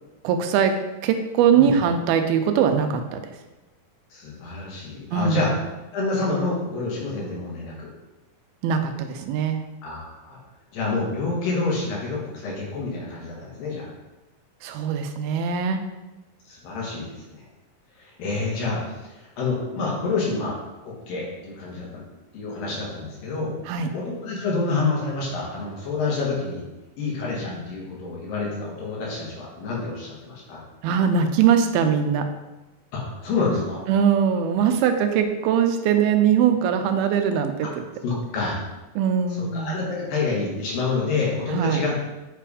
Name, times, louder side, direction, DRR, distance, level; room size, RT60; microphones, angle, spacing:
voice 1, 0.2-0.7 1.0-3.2 5.1-5.4 8.6-9.6 14.6-15.8 23.7-23.9 30.8-32.3 33.9-37.7 39.0-39.8 41.5-41.8, right 7 dB, 85° right, 6 dB, 2.5 m, -21 dB
voice 2, 4.1-5.5 5.9-7.9 9.8-10.4 10.7-13.9 16.5-17.2 18.0-20.6 20.8-22.0 22.3-23.6 23.9-26.6 27.0-30.6 32.9-33.8 38.0-38.6 39.4-42.0, left 3 dB, 70° left, -4 dB, 3.2 m, -28 dB
7.8 x 3.4 x 4.8 m, 1.1 s
omnidirectional pair, 4.3 m